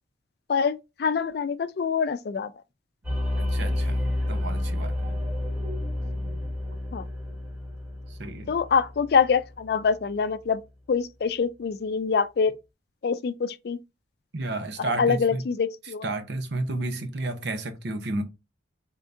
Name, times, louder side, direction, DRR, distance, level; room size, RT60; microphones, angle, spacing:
voice 1, 1.0-2.5 6.9-7.0 8.5-10.6 10.9-12.5 13.0-13.8 14.8-16.0, left 5 dB, 55° left, 0.3 m, -25 dB
sound 1, 3.0-9.8, left 1 dB, 10° right, 1.2 m, -30 dB
voice 2, 3.4-4.9 8.1-8.5 14.3-15.4 15.8-18.2, right 2 dB, 65° right, 0.7 m, -32 dB
3.6 x 2.6 x 3.4 m
head